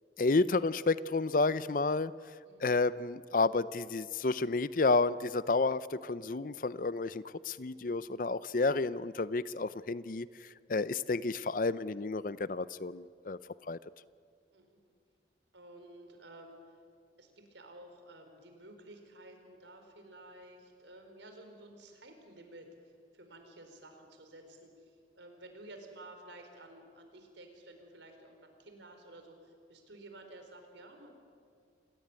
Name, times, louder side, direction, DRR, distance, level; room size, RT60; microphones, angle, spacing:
voice 1, 0.2-2.1 2.6-13.4 13.7-13.8, left 3 dB, 45° left, 17 dB, 0.5 m, -31 dB
voice 2, 15.5-16.8 17.2-22.7 23.1-31.1, right 1 dB, 85° right, 5 dB, 4.4 m, -53 dB
26.5 x 18.0 x 9.7 m, 2.2 s
head